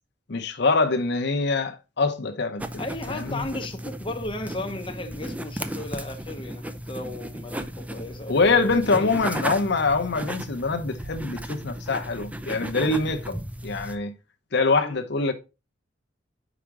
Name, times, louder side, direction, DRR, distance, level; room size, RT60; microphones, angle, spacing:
voice 1, 0.3-2.6 3.1-3.4 8.3-13.4 13.6-14.1 14.5-15.3, left 3 dB, 65° left, 0.8 m, -24 dB
sound 1, 2.6-14.0, right 1 dB, 10° right, 0.5 m, -35 dB
voice 2, 2.8-9.1 14.8-15.0, left 2 dB, 30° left, 0.7 m, -35 dB
5.0 x 5.0 x 4.6 m
head